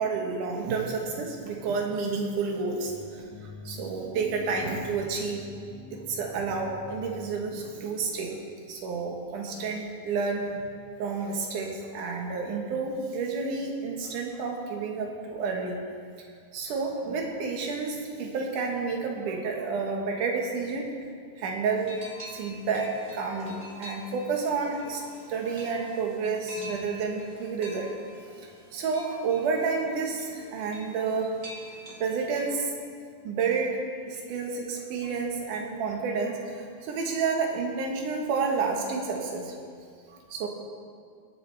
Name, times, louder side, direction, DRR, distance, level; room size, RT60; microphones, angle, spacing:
voice 1, 0.0-3.2 3.7-5.4 5.9-8.4 8.7-10.6 11.0-15.8 16.5-20.9 21.4-22.0 22.3-25.0 25.3-27.9 28.7-31.3 32.0-32.7 33.2-39.5 40.1-40.5, right 4 dB, 80° right, 1 dB, 2.7 m, -30 dB
sound 1, 2.8-7.8, left 4 dB, 70° left, 3.5 m, -45 dB
sound 2, 21.8-32.5, equal, 25° right, 1.3 m, -47 dB
22.0 x 7.4 x 3.3 m, 2.2 s
omnidirectional pair, 3.6 m